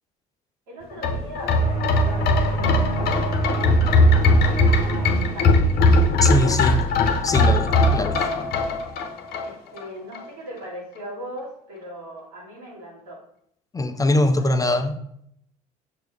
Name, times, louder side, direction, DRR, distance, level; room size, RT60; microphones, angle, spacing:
voice 1, 0.7-4.6 4.9-5.9 6.2-6.8 9.4-13.2 14.2-14.8, equal, 80° right, 2.6 m, -40 dB
sound 1, 0.9-9.8 10.1-10.2, left 2 dB, 60° left, 0.9 m, -20 dB
sound 2, 1.6-7.0, right 3 dB, 35° right, 1.7 m, -28 dB
voice 2, 6.2-6.8 7.2-8.2 13.7-15.0, left 2 dB, 20° left, 0.6 m, -22 dB
6.5 x 4.6 x 3.4 m
hypercardioid pair, 65°, 18 cm